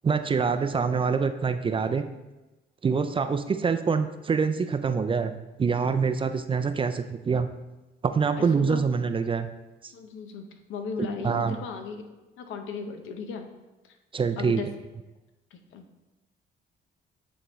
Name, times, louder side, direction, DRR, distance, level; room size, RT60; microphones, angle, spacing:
voice 1, 0.0-2.0 2.8-7.5 8.0-9.5 9.8-9.9 11.2-11.6 14.1-14.6, right 5 dB, 25° right, 9 dB, 0.4 m, -25 dB
voice 2, 8.4-8.8 9.9-12.1 12.4-13.5 13.8-14.0 14.4-14.7 15.5-15.9, left 5 dB, 80° left, 5 dB, 0.7 m, -36 dB
9.1 x 3.7 x 3.1 m, 1.1 s
cardioid pair, 90°, 20 cm